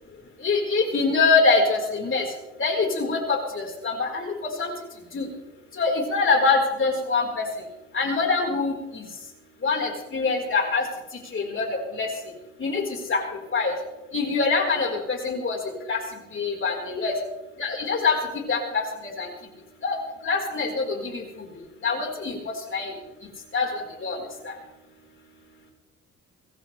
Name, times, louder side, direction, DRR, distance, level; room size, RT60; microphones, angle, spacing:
voice 1, 0.4-2.3 2.6-4.3 4.6-4.7 5.1-5.3 5.8-7.4 7.9-9.0 9.6-10.8 11.3-11.7 12.0-12.1 12.6-12.8 13.1-13.2 13.5-13.7 14.1-15.6 15.9-16.0 16.3-17.1 17.6-18.2 18.5-18.8 19.2-19.3 19.8-20.0 20.2-21.2 21.8-22.4 22.7-22.9 23.5-24.2 24.4-24.5, left 4 dB, 40° left, 1 dB, 4.5 m, -24 dB
25.0 x 13.5 x 3.4 m, 1.1 s
cardioid pair, 90°, 30 cm